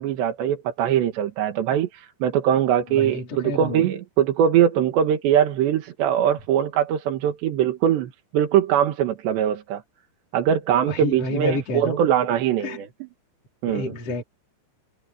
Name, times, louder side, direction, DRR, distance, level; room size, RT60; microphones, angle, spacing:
voice 1, 0.0-9.8 10.3-12.9 13.6-14.0, right 9 dB, 75° right, 3.8 m, -22 dB
voice 2, 2.9-3.8 10.8-12.0 12.6-12.8 13.7-14.2, left 1 dB, 35° left, 5.3 m, -29 dB
omnidirectional pair, 5.2 m